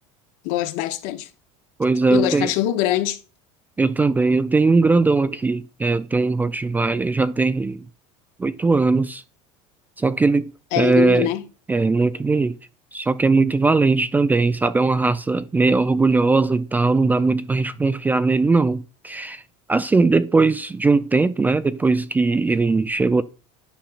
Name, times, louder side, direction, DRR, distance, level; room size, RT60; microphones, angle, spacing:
voice 1, 0.4-1.3 2.1-3.2 10.7-11.4, left 14 dB, 65° left, 0.9 m, -23 dB
voice 2, 1.8-2.5 3.8-7.9 8.4-9.2 10.0-11.3 11.7-12.6 12.9-19.4 19.7-23.2, right 3 dB, 10° right, 0.3 m, -19 dB
10.0 x 5.6 x 2.4 m
supercardioid pair, 130°, 16 cm